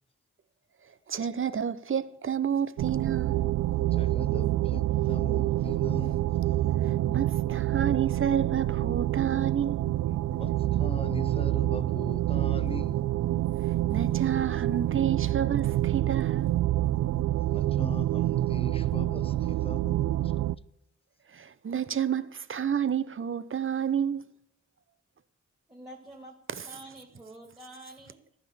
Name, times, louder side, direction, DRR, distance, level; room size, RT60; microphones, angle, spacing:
voice 1, 1.1-3.4 6.8-9.8 13.9-16.5 21.3-24.2, right 8 dB, 45° right, 0.9 m, -30 dB
sound 1, 2.8-20.6, right 14 dB, 85° right, 0.5 m, -27 dB
voice 2, 3.8-6.4 10.3-13.2 17.5-20.1, left 3 dB, 20° left, 0.8 m, -40 dB
voice 3, 25.7-28.2, right 1 dB, 15° right, 2.8 m, -48 dB
14.5 x 5.9 x 9.2 m
cardioid pair, 80°, 29 cm